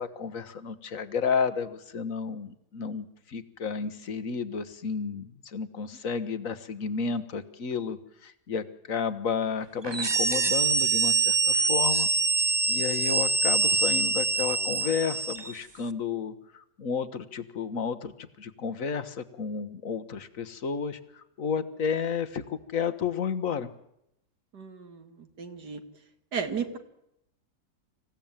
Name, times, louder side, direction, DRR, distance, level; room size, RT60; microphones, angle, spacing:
voice 1, 0.0-12.1 12.7-23.7, left 6 dB, 50° left, 13 dB, 1.6 m, -32 dB
sound 1, 9.8-15.5, right 3 dB, 35° right, 0.4 m, -25 dB
voice 2, 24.5-25.8 26.3-26.8, right 6 dB, 65° right, 8 dB, 2.4 m, -35 dB
26.0 x 16.0 x 8.9 m, 0.82 s
omnidirectional pair, 1.9 m